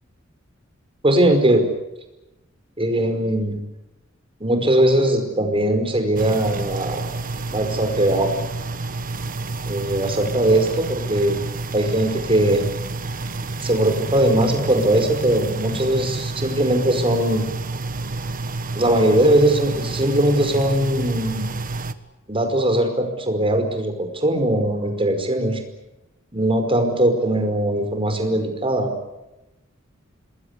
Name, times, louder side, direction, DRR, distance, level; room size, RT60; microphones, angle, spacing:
voice 1, 1.0-1.7 2.8-3.6 4.4-7.1 7.5-8.3 9.6-11.4 11.7-12.6 13.6-17.5 18.8-21.5 22.3-25.6 26.3-28.9, right 1 dB, 25° right, 7 dB, 5.1 m, -20 dB
sound 1, 6.2-21.9, right 3 dB, 45° right, 1.4 m, -29 dB
27.0 x 21.5 x 8.3 m, 0.95 s
head